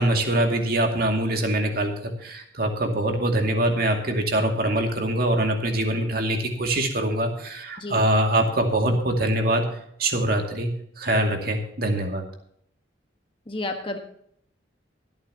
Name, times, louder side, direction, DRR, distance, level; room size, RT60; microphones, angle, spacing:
voice 1, 0.0-9.6 10.0-10.7 11.0-12.2, right 1 dB, 50° right, 4 dB, 2.3 m, -23 dB
voice 2, 13.5-14.0, left 2 dB, 25° left, 4 dB, 1.3 m, -31 dB
24.0 x 8.9 x 2.9 m, 0.68 s
head